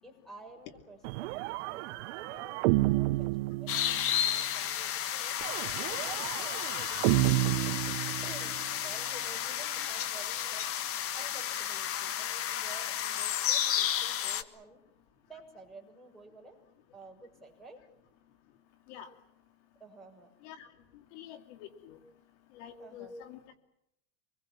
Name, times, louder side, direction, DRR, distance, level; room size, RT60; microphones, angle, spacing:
voice 1, 0.0-5.3 5.7-7.4 8.2-10.7 11.1-14.8 15.2-16.6 16.9-17.8 19.8-20.3 22.8-23.1, right 2 dB, ahead, 6 dB, 6.8 m, -52 dB
sound 1, 1.0-4.3 5.4-8.7, right 20 dB, 75° right, 0.9 m, -31 dB
sound 2, 3.7-14.4, left 10 dB, 40° left, 1.6 m, -32 dB
voice 2, 21.1-22.0 22.5-23.4, left 8 dB, 70° left, 7 dB, 2.7 m, -47 dB
26.5 x 21.5 x 7.3 m, 0.78 s
supercardioid pair, 140°, 36 cm